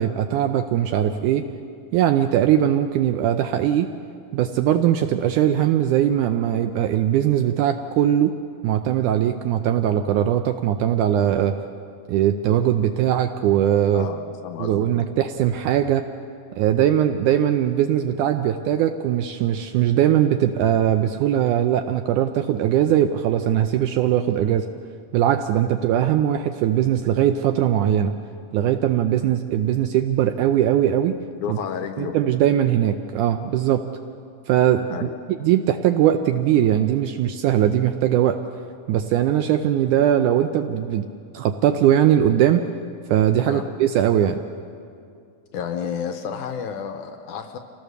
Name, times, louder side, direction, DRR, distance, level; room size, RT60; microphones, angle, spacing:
voice 1, 0.0-1.4 1.9-3.9 4.3-8.3 8.6-11.6 12.1-14.1 14.6-16.0 16.6-24.7 25.1-28.1 28.5-31.2 31.5-31.6 32.0-33.8 34.5-35.1 35.4-38.4 38.9-41.1 41.3-42.6 43.1-44.4, right 10 dB, 80° right, 8 dB, 1.8 m, -20 dB
voice 2, 13.9-14.9 31.4-32.2 34.9-35.1 43.5-43.6 45.5-47.6, left 7 dB, 75° left, 6 dB, 2.0 m, -31 dB
26.0 x 17.5 x 6.7 m, 2.4 s
omnidirectional pair, 4.1 m